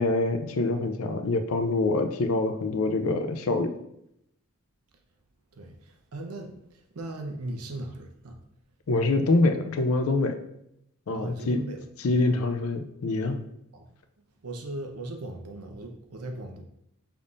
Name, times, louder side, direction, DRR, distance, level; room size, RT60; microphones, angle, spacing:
voice 1, 0.0-3.7 8.9-10.4 11.1-11.6 12.0-13.4, left 2 dB, 70° left, 7 dB, 0.5 m, -25 dB
voice 2, 5.5-8.4 11.1-11.8 13.7-13.9 14.4-16.6, right 1 dB, 90° right, 4 dB, 0.7 m, -38 dB
5.3 x 3.5 x 2.5 m, 0.78 s
head